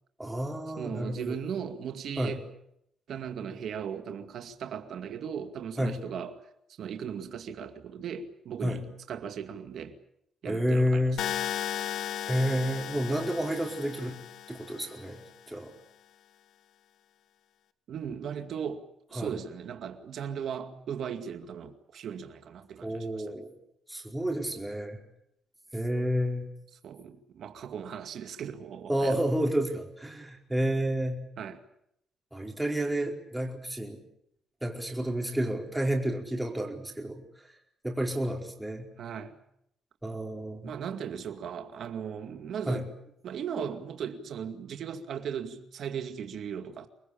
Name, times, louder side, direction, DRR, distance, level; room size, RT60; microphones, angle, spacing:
voice 1, 0.2-1.4 2.2-2.3 5.8-6.0 8.6-8.8 10.5-11.2 12.3-14.1 14.5-15.2 15.5-15.7 19.1-19.3 22.8-23.5 23.9-25.0 25.7-26.5 28.9-31.2 32.3-34.0 34.6-37.2 37.8-38.9 40.0-40.7 42.7-42.8, equal, 5° right, 4.8 m, -30 dB
voice 2, 0.8-2.4 3.1-6.4 6.8-10.0 10.4-11.4 17.9-23.4 26.8-29.2 31.4-31.6 39.0-39.4 40.6-42.9 43.2-46.9, right 7 dB, 65° right, 2.2 m, -37 dB
sound 1, 11.2-15.2, left 10 dB, 75° left, 1.3 m, -36 dB
25.0 x 21.0 x 8.7 m
cardioid pair, 110°, 0 cm